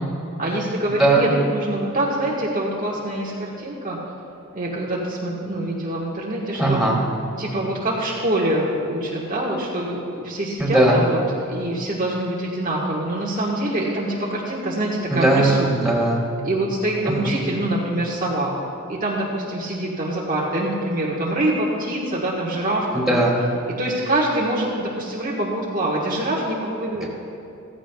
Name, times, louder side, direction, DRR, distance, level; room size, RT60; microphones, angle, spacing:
voice 1, 0.4-4.0 4.5-6.9 7.4-11.2 11.5-15.7 16.4-18.5 18.9-23.2 23.8-27.1, right 1 dB, 40° right, -4 dB, 1.4 m, -25 dB
voice 2, 1.0-1.3 6.6-7.0 10.6-11.0 15.1-16.2 17.1-17.2 22.9-23.4 27.0-27.1, right 2 dB, ahead, -5 dB, 2.8 m, -18 dB
15.5 x 15.0 x 2.3 m, 2.6 s
head